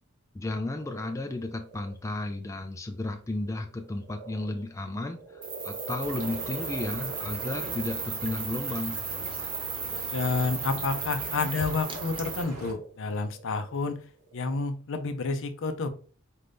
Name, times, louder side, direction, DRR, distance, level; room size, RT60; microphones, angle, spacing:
voice 1, 0.3-5.2 5.6-9.0, left 2 dB, 15° left, 4 dB, 0.4 m, -33 dB
sound 1, 0.8-2.0 2.9-14.6, right 3 dB, 55° right, 1.0 m, -44 dB
sound 2, 5.4-12.4, right 5 dB, 25° right, 0.7 m, -35 dB
sound 3, 6.0-12.7, right 1 dB, 75° right, 1.2 m, -42 dB
voice 2, 10.1-14.0 14.3-15.9, left 4 dB, 60° left, 8 dB, 0.6 m, -30 dB
4.4 x 2.6 x 3.5 m, 0.39 s
head